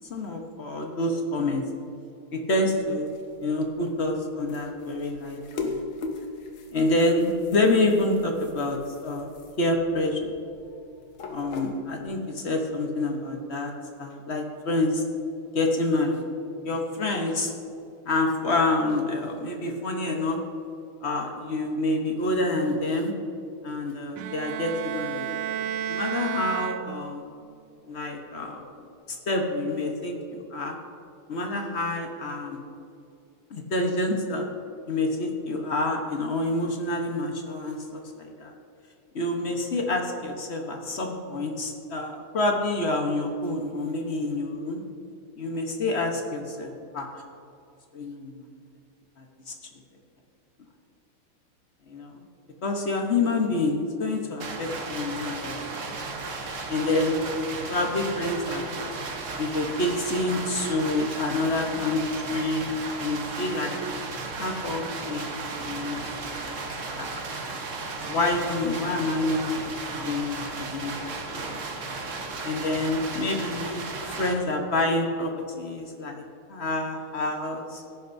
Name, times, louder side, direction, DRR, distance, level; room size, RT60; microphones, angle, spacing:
voice 1, 0.1-1.6 2.3-3.1 3.4-5.8 6.7-9.3 9.6-10.3 11.3-13.7 14.0-15.0 15.5-16.2 16.6-17.5 18.1-20.4 21.0-23.1 23.6-25.2 25.9-27.2 27.9-28.7 29.1-30.8 31.3-32.6 33.5-34.5 34.9-38.5 39.1-44.8 45.4-47.1 47.9-48.4 49.2-49.5 51.9-52.2 52.6-55.6 56.7-57.2 57.7-58.7 59.4-62.7 63.0-63.8 64.4-66.0 66.2-66.6 66.9-67.2 68.1-70.9 71.3-71.6 72.4-75.3 75.6-76.2 76.5-77.8, left 2 dB, 45° left, 2 dB, 0.9 m, -27 dB
sound 1, 2.7-12.3, left 3 dB, 70° left, 1.8 m, -40 dB
Bowed string instrument, 24.2-27.3, right 11 dB, 75° right, 1.1 m, -32 dB
sound 2, 54.4-74.3, right 3 dB, 45° right, 1.1 m, -35 dB
17.0 x 10.0 x 2.7 m, 2.5 s
omnidirectional pair, 2.4 m